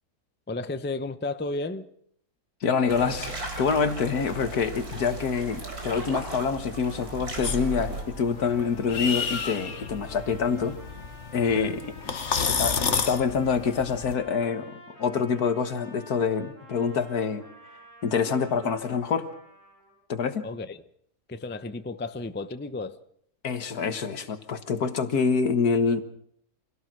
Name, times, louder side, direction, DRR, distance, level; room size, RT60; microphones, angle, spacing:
voice 1, 0.5-1.9 11.5-11.7 20.4-20.8 21.3-23.0, left 2 dB, 10° left, 10 dB, 0.5 m, -33 dB
voice 2, 2.6-10.8 11.3-11.8 12.5-17.4 18.0-19.3 20.1-20.5 23.4-26.0, left 5 dB, 70° left, 10 dB, 1.9 m, -26 dB
sound 1, 2.9-8.0, right 2 dB, 70° right, 4.8 m, -36 dB
sound 2, 7.4-14.1, left 5 dB, 50° left, 1.5 m, -31 dB
Trumpet, 7.6-20.0, equal, 30° right, 8.0 m, -50 dB
26.0 x 17.0 x 6.2 m, 0.67 s
omnidirectional pair, 1.7 m